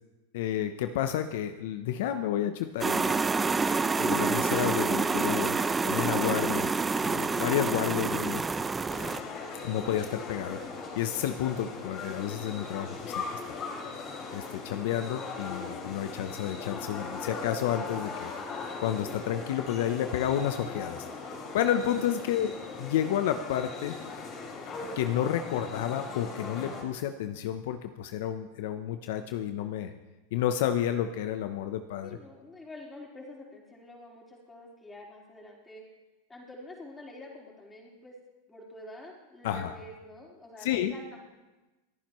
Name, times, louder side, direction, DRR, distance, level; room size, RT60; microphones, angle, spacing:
voice 1, 0.3-3.2 4.0-5.6 5.8-6.7 7.0-8.4 9.6-10.6 11.0-13.6 14.3-18.3 18.8-21.1 21.5-22.5 22.8-24.0 25.0-29.9 30.3-32.2 39.4-39.7 40.6-40.9, left 10 dB, 70° left, 8 dB, 0.8 m, -30 dB
sound 1, 2.8-9.2, right 4 dB, 15° right, 0.6 m, -27 dB
sound 2, 8.9-26.8, left 4 dB, 35° left, 3.6 m, -39 dB
voice 2, 16.1-16.5 32.0-35.8 36.3-38.1 38.5-41.2, left 1 dB, 15° left, -3 dB, 4.2 m, -47 dB
28.0 x 10.0 x 3.1 m, 1.1 s
hypercardioid pair, 120°, 0 cm